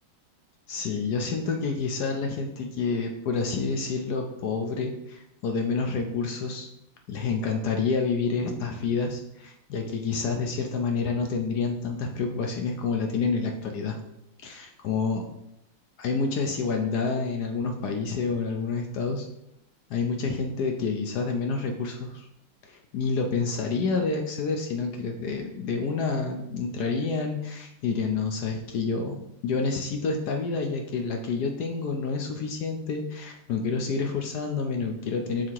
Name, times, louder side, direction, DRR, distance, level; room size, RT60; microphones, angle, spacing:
voice 1, 0.7-6.7 7.1-14.0 14.4-15.3 16.0-19.3 19.9-22.3 22.6-29.2 29.4-35.5, left 4 dB, 70° left, 3 dB, 0.9 m, -28 dB
7.3 x 2.9 x 4.5 m, 0.80 s
omnidirectional pair, 2.4 m